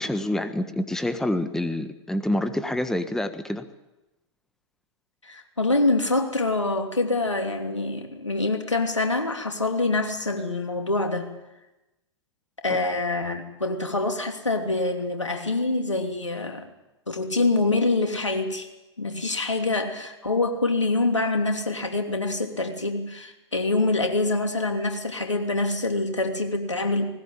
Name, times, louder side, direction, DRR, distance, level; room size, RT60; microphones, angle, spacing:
voice 1, 0.0-3.6 12.7-12.8, left 1 dB, 5° left, 10 dB, 1.4 m, -27 dB
voice 2, 5.2-11.3 12.6-16.7 17.1-18.7 19.0-27.1, left 2 dB, 85° left, 5 dB, 2.8 m, -25 dB
20.0 x 19.5 x 8.7 m, 1.0 s
figure-of-eight pair, 100°, 15 cm